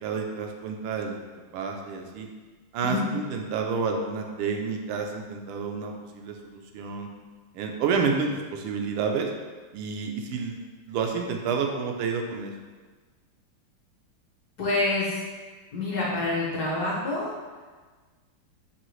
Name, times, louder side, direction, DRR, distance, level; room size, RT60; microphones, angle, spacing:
voice 1, 0.0-1.2 1.5-2.3 2.7-7.1 7.5-9.3 9.7-10.6 10.9-12.5, right 5 dB, 85° right, 2 dB, 1.5 m, -29 dB
voice 2, 14.6-15.2 15.7-17.3, left 2 dB, 60° left, -5 dB, 1.1 m, -27 dB
5.7 x 2.7 x 3.1 m, 1.4 s
omnidirectional pair, 2.3 m